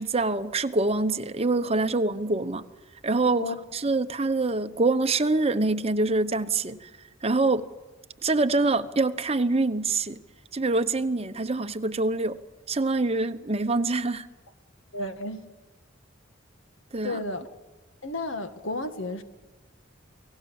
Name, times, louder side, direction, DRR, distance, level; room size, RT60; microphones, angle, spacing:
voice 1, 0.0-2.6 3.0-6.9 7.2-7.7 8.2-10.2 10.5-12.4 12.7-14.3 16.9-17.2, right 3 dB, 30° right, 0.9 m, -25 dB
voice 2, 14.9-15.5 17.0-17.5 18.0-19.2, left 2 dB, 70° left, 1.7 m, -32 dB
29.0 x 18.5 x 7.2 m
head